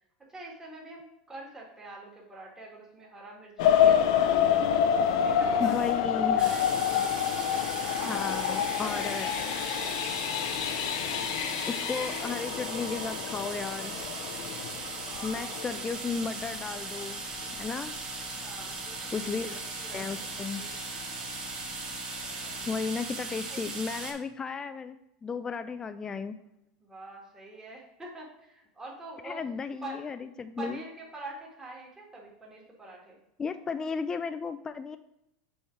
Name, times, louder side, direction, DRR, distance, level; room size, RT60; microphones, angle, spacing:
voice 1, 0.2-4.7 5.1-5.9 6.2-6.9 7.8-10.1 14.8-16.1 18.3-20.7 22.5-22.9 23.5-23.6 26.8-29.4 29.8-30.0 30.6-33.2, right 2 dB, 15° right, -3 dB, 1.9 m, -45 dB
sound 1, 3.6-16.2 16.8-16.9 17.4-17.6 18.0-18.1, left 9 dB, 70° left, 0.5 m, -27 dB
voice 2, 5.6-6.6 8.0-9.3 11.4-14.0 15.2-17.2 17.5-17.9 19.1-19.6 19.9-20.6 22.7-26.4 29.2-30.8 33.4-35.0, left 5 dB, 20° left, 10 dB, 0.3 m, -34 dB
sound 2, 6.4-24.1, right 3 dB, 30° right, 1.8 m, -38 dB
6.3 x 4.2 x 4.6 m, 0.85 s
supercardioid pair, 110°, 3 cm